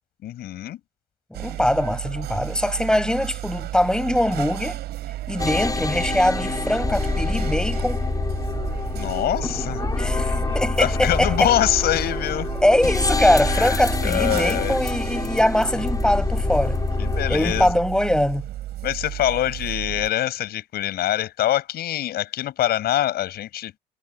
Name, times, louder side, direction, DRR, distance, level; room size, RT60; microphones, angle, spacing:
voice 1, 0.2-0.8 8.9-9.8 10.8-12.5 13.5-14.7 17.0-17.7 18.8-23.7, left 13 dB, 70° left, 7.9 m, -24 dB
voice 2, 1.3-4.8 5.3-8.0 10.0-11.5 12.6-16.8 17.3-18.5, left 1 dB, 5° left, 7.7 m, -22 dB
sound 1, 1.3-20.1, right 14 dB, 75° right, 7.3 m, -33 dB
sound 2, 5.4-17.7, left 3 dB, 20° left, 5.8 m, -26 dB
cardioid pair, 110°, 17 cm